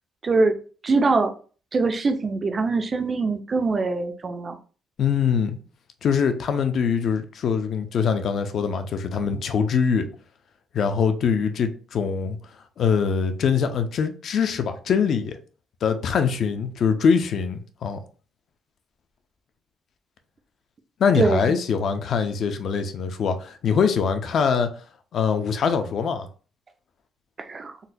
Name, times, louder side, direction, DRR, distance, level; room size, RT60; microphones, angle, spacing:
voice 1, 0.2-0.5 0.8-1.3 1.7-4.6 21.2-21.5 27.4-27.7, right 3 dB, 30° right, 0.4 m, -23 dB
voice 2, 5.0-5.6 6.0-10.1 10.7-12.4 12.8-15.4 15.8-18.0 21.0-24.7 25.1-26.3, left 6 dB, 50° left, 0.4 m, -23 dB
3.9 x 2.2 x 2.6 m
cardioid pair, 150°, 0 cm